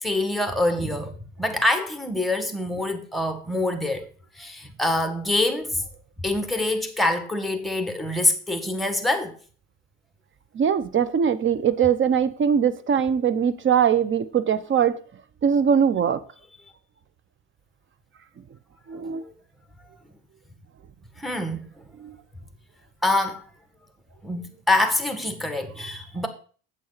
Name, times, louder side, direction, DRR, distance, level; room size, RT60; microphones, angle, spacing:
voice 1, 0.0-4.1 4.3-5.8 6.2-9.4 19.2-19.3 21.2-21.7 23.0-23.5 24.2-26.3, left 2 dB, ahead, 1.7 m, -25 dB
voice 2, 10.5-15.0 15.4-16.2 18.9-19.2 22.0-22.2, right 7 dB, 35° right, 0.8 m, -21 dB
8.5 x 7.8 x 4.2 m
supercardioid pair, 85°, 35 cm